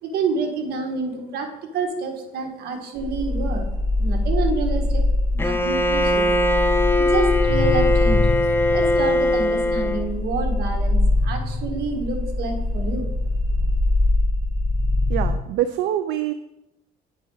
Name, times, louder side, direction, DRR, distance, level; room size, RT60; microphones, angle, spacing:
voice 1, 0.0-3.7 4.0-5.0 5.3-6.3 6.9-13.1, right 4 dB, 70° right, 4 dB, 1.5 m, -28 dB
sound 1, 3.0-15.3, left 1 dB, 25° right, 1.2 m, -23 dB
Bowed string instrument, 5.4-10.1, left 1 dB, 15° left, 0.5 m, -21 dB
voice 2, 15.1-16.3, right 11 dB, 85° right, 9 dB, 0.4 m, -24 dB
8.6 x 5.1 x 3.9 m, 0.88 s
cardioid pair, 110°, 17 cm